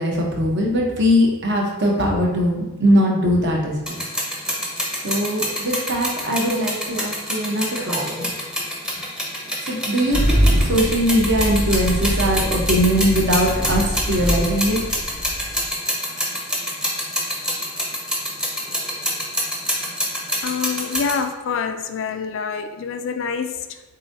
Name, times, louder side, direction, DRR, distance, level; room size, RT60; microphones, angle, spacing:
voice 1, 0.0-4.0 5.0-8.3 9.6-14.8, equal, 50° right, -1 dB, 0.9 m, -21 dB
sound 1, 3.9-21.2, equal, 5° right, 0.7 m, -26 dB
Engine starting, 10.1-15.7, equal, 90° right, 0.8 m, -23 dB
voice 2, 20.4-23.8, left 6 dB, 60° left, 8 dB, 0.3 m, -26 dB
7.0 x 2.7 x 2.6 m, 1.1 s
head